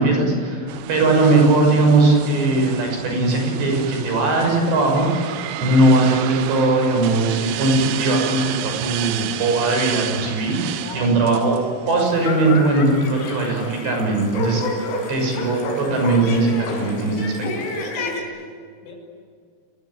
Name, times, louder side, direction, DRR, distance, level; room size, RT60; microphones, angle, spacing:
voice 1, 0.0-11.6 11.9-14.6 15.1-17.3, right 2 dB, 60° right, 2 dB, 8.6 m, -19 dB
sound 1, 0.7-12.7, right 12 dB, 80° right, 3.3 m, -31 dB
voice 2, 10.8-11.3 18.3-18.9, left 3 dB, 70° left, 1 dB, 8.4 m, -40 dB
sound 2, 12.0-18.2, left 2 dB, 90° left, 6.7 m, -29 dB
29.0 x 21.0 x 9.0 m, 2.1 s
omnidirectional pair, 5.6 m